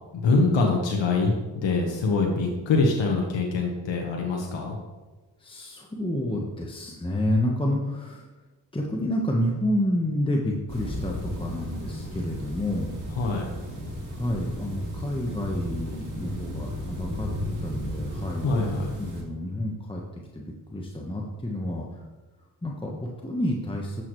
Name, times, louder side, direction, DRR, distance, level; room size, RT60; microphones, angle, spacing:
voice 1, 0.1-4.8 13.1-13.5 18.4-18.9, left 3 dB, 65° left, 0 dB, 1.3 m, -24 dB
voice 2, 5.4-8.3 8.7-13.0 14.1-17.3 17.6-18.6 19.0-20.0 20.3-22.0 22.6-24.0, left 1 dB, 10° left, -1 dB, 1.2 m, -29 dB
sound 1, 10.7-19.2, equal, 40° right, 2.6 m, -34 dB
11.0 x 6.7 x 3.2 m, 1.2 s
supercardioid pair, 50°, 47 cm